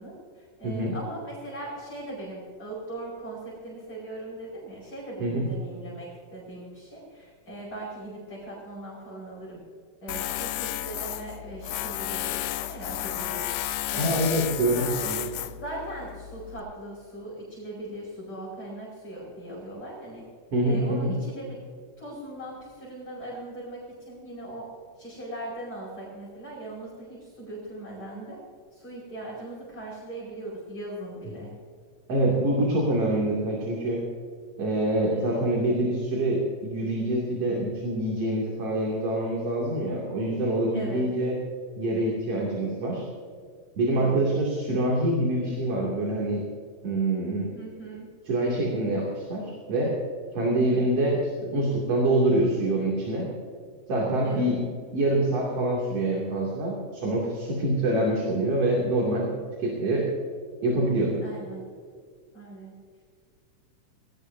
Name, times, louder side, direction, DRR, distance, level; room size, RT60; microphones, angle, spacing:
voice 1, 0.0-9.6 10.0-14.9 15.3-20.2 20.6-21.6 22.0-24.7 25.0-28.4 28.7-31.5 35.1-35.4 40.7-41.1 43.9-44.2 47.5-48.1 50.5-50.9 54.2-54.6 61.2-61.6 62.3-62.7, right 1 dB, 30° left, -6 dB, 5.7 m, -39 dB
voice 2, 0.6-0.9 5.2-5.5 14.0-15.2 20.5-21.1 32.1-34.0 34.6-41.3 41.8-43.0 43.8-46.4 46.8-47.5 48.3-50.0 50.3-53.3 53.9-54.7 54.9-59.3 59.6-60.1 60.6-61.2, right 1 dB, 55° right, -3 dB, 3.7 m, -25 dB
Tools, 10.1-16.6, left 13 dB, 85° left, 2.1 m, -32 dB
22.0 x 18.5 x 2.8 m, 2.1 s
omnidirectional pair, 3.3 m